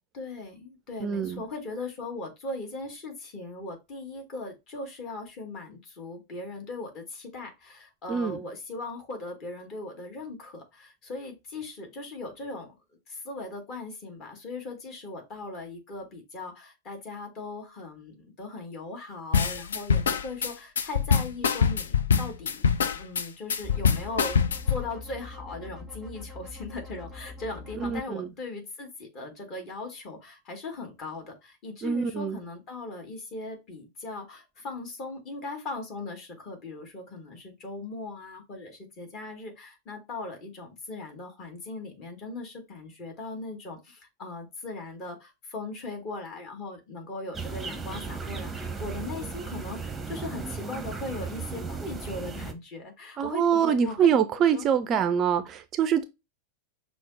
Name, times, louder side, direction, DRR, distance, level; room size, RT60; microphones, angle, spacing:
voice 1, 0.1-12.8 13.1-24.4 24.7-54.1 54.3-54.7 55.8-55.9, left 2 dB, 35° left, 1.5 m, -39 dB
voice 2, 1.0-1.4 8.1-8.4 27.8-28.3 31.8-32.4 53.2-56.0, right 8 dB, 30° right, 0.4 m, -25 dB
sound 1, 19.3-24.8, left 6 dB, 65° left, 0.4 m, -24 dB
sound 2, 23.6-28.0, left 3 dB, 5° left, 1.4 m, -43 dB
sound 3, 47.3-52.5, right 4 dB, 10° right, 0.8 m, -36 dB
5.8 x 2.0 x 3.7 m
figure-of-eight pair, 90°, 0 cm